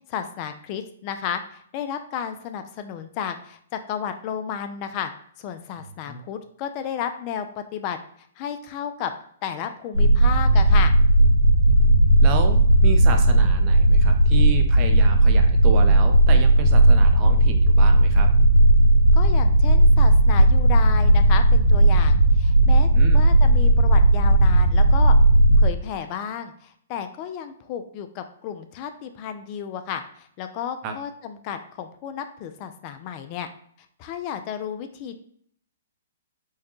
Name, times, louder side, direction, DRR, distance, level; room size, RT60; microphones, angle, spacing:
voice 1, 0.1-5.1 5.4-8.0 8.4-9.1 9.4-10.9 19.1-25.2 25.5-33.5 34.0-35.2, left 8 dB, 35° left, 8 dB, 0.4 m, -33 dB
sound 1, 9.9-25.7, right 1 dB, 75° right, 1.0 m, -16 dB
voice 2, 12.2-18.3 22.9-23.3 30.8-30.9, right 4 dB, 35° right, 5 dB, 0.6 m, -31 dB
4.5 x 2.2 x 3.1 m, 0.63 s
hypercardioid pair, 130°, 0 cm